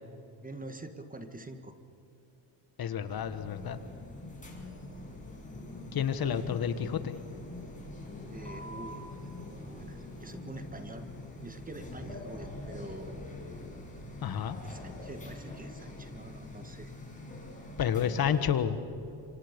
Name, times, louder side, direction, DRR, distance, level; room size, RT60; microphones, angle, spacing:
voice 1, 0.4-1.8 8.3-11.0 11.4-13.2 14.6-16.9, right 2 dB, 15° right, 7 dB, 1.7 m, -46 dB
voice 2, 2.8-3.8 5.9-7.2 14.2-14.6 17.8-18.8, left 8 dB, 50° left, 11 dB, 1.6 m, -30 dB
sound 1, 3.0-18.6, left 2 dB, 15° left, 6.6 m, -44 dB
26.5 x 25.5 x 5.4 m, 2.9 s
cardioid pair, 100°, 47 cm